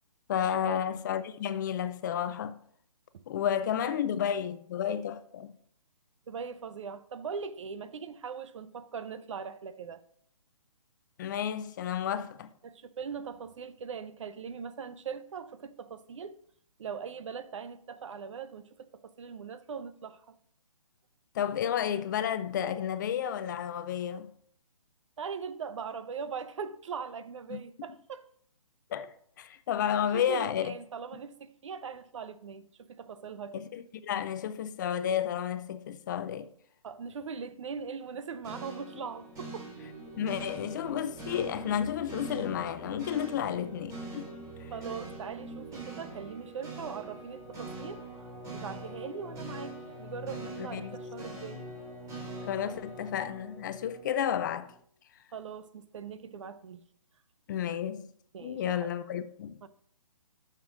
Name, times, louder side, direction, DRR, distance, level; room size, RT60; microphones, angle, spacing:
voice 1, 0.3-2.6 3.3-5.5 11.2-12.5 21.3-24.3 27.5-27.6 28.9-30.7 33.5-36.5 40.2-44.3 44.6-44.7 50.6-51.0 52.4-54.7 57.5-58.1 58.4-59.6, left 9 dB, 35° left, 0.5 m, -32 dB
voice 2, 6.3-10.0 12.6-16.4 16.8-18.9 19.2-20.3 25.2-28.3 30.1-33.6 36.8-39.7 44.7-48.0 48.5-51.6 55.3-56.8 58.3-58.9 59.6-59.7, right 6 dB, 55° right, 0.7 m, -40 dB
sound 1, 38.4-54.7, right 2 dB, 20° right, 4.0 m, -43 dB
10.0 x 6.7 x 3.8 m
figure-of-eight pair, 140°, 18 cm